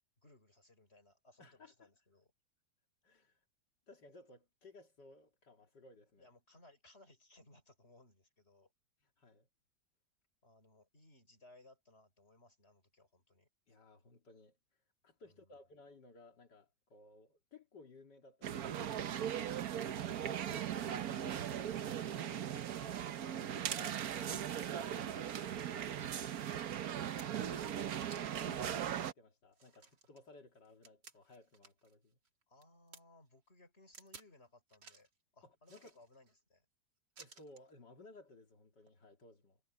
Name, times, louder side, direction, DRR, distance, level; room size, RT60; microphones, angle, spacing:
voice 1, 0.2-2.3 6.2-8.7 10.4-13.5 15.2-15.6 20.0-20.2 24.1-24.8 27.5-28.0 32.5-36.7, left 2 dB, 35° left, 6.3 m, -64 dB
voice 2, 1.4-1.9 3.0-3.4 3.9-6.3 9.2-9.5 13.7-14.6 15.0-19.9 20.5-21.8 22.1-24.3 24.6-26.5 28.2-32.2 35.4-36.0 37.2-39.6, left 2 dB, 75° left, 3.1 m, -59 dB
sound 1, 18.4-29.1, right 10 dB, 60° right, 1.3 m, -39 dB
sound 2, 26.9-27.6 28.1-28.6 29.0-29.1 29.5-31.9 32.2-33.0 33.9-34.3 34.7-35.1 35.6-36.3 37.2-37.7 38.8-38.9, right 5 dB, 75° right, 3.1 m, -58 dB
omnidirectional pair, 1.9 m